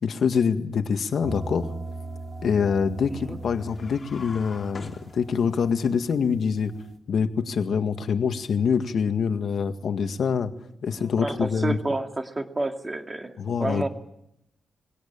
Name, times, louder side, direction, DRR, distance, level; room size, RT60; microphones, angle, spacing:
voice 1, 0.0-1.7 2.4-6.7 7.1-10.5 10.8-11.8 13.4-13.9, left 6 dB, 60° left, 8 dB, 1.9 m, -25 dB
sound 1, 1.2-6.9, right 2 dB, 35° right, 3.1 m, -39 dB
sound 2, 3.7-5.7, left 3 dB, 35° left, 3.4 m, -44 dB
voice 2, 11.0-13.9, right 2 dB, 20° right, 5 dB, 2.4 m, -30 dB
22.5 x 18.0 x 8.9 m, 0.79 s
cardioid pair, 115°, 0 cm